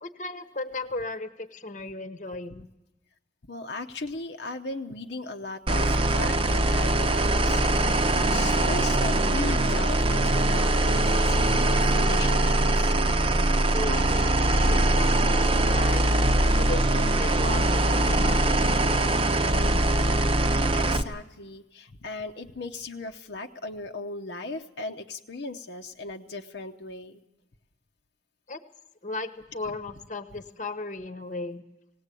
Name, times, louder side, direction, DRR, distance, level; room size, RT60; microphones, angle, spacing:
voice 1, 0.0-2.7 13.7-16.1 16.6-19.8 28.5-28.6 29.0-31.6, left 2 dB, 45° left, 9 dB, 1.1 m, -36 dB
voice 2, 3.5-13.0 16.0-16.1 20.5-27.2, left 2 dB, 70° left, 4 dB, 0.9 m, -37 dB
sound 1, 5.7-21.0, right 1 dB, 30° right, 0.8 m, -22 dB
18.5 x 18.0 x 8.3 m, 0.94 s
head